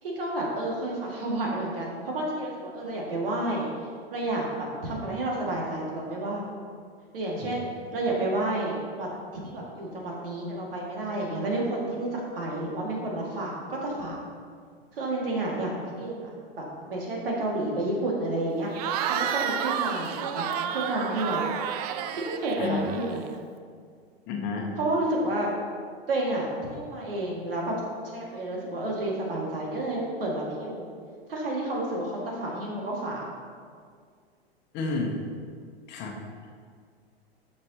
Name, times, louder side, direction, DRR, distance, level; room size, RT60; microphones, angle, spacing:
voice 1, 0.0-3.7 4.1-4.5 4.8-6.5 7.1-9.1 9.4-14.2 15.0-18.7 19.1-21.4 22.1-23.2 24.8-25.5 26.1-27.8 28.0-30.9 31.3-33.2, right 2 dB, 60° right, -2 dB, 2.1 m, -30 dB
Cheering / Crowd, 18.7-23.4, right 9 dB, 40° right, 0.5 m, -31 dB
voice 2, 22.6-22.9 24.3-24.8 34.7-35.2 35.9-36.2, left 3 dB, 35° left, 1 dB, 1.2 m, -31 dB
12.0 x 6.5 x 2.9 m, 2.1 s
figure-of-eight pair, 90°, 31 cm